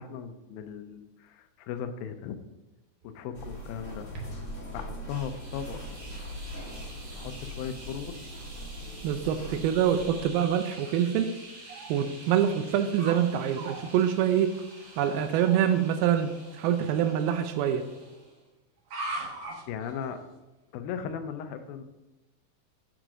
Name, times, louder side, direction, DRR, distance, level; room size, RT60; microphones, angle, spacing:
voice 1, 0.0-2.4 3.0-4.1 4.7-5.8 7.1-8.3 19.7-20.2 20.7-21.8, left 8 dB, 80° left, 8 dB, 2.4 m, -37 dB
sound 1, 3.0-4.6 5.3-5.4 6.1-6.3 6.9-7.1 7.5-7.6 7.8-8.1 8.6-8.7 11.7-11.9 12.5-13.2 13.5-13.9 15.3-15.6 16.7-17.3 18.8-20.4, right 2 dB, 65° right, 1.4 m, -41 dB
sound 2, 3.3-10.2, equal, 45° left, 0.9 m, -41 dB
sound 3, 5.1-18.4, right 2 dB, 40° right, 1.6 m, -48 dB
voice 2, 9.0-11.3 11.9-14.5 15.0-17.8, right 9 dB, 90° right, 8 dB, 2.5 m, -25 dB
7.6 x 5.0 x 6.0 m, 1.0 s
omnidirectional pair, 4.2 m